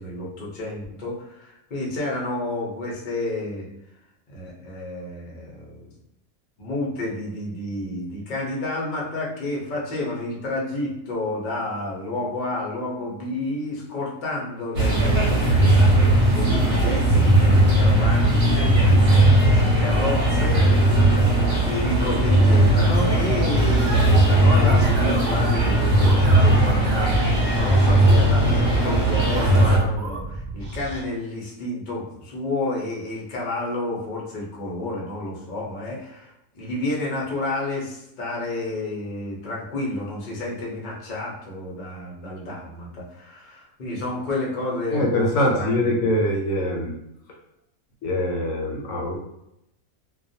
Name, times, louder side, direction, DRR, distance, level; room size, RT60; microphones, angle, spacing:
voice 1, 0.0-3.7 4.3-5.9 6.6-15.5 16.3-20.9 21.3-45.3 45.5-46.1, left 2 dB, 50° left, -3 dB, 0.6 m, -30 dB
sound 1, 14.7-29.8, right 1 dB, 60° right, 1.0 m, -18 dB
sound 2, 23.6-31.0, right 2 dB, 80° right, 0.4 m, -34 dB
voice 2, 44.9-46.9 48.0-49.2, left 1 dB, 70° left, -1 dB, 0.9 m, -23 dB
2.3 x 2.2 x 2.6 m, 0.84 s
omnidirectional pair, 1.5 m